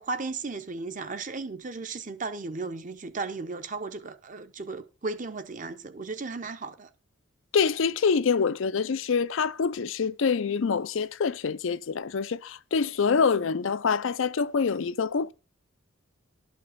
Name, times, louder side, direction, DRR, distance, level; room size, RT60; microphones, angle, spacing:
voice 1, 0.0-6.9, right 3 dB, 35° right, 0.8 m, -35 dB
voice 2, 7.5-15.3, left 5 dB, 65° left, 0.5 m, -26 dB
11.5 x 5.3 x 5.7 m
head